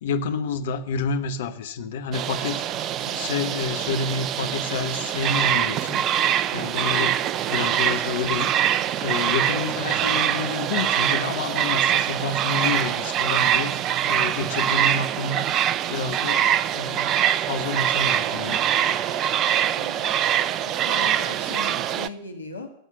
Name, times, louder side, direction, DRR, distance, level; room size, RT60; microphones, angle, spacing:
voice 1, 0.0-6.0 6.5-8.5 9.0-15.5 15.9-16.5 16.7-18.6, left 4 dB, 60° left, 8 dB, 1.2 m, -29 dB
sound 1, 2.1-22.1, right 10 dB, 35° right, 0.6 m, -24 dB
voice 2, 19.4-22.7, left 3 dB, 80° left, 4 dB, 2.0 m, -39 dB
17.0 x 7.9 x 9.2 m, 0.71 s
figure-of-eight pair, 90°, 0 cm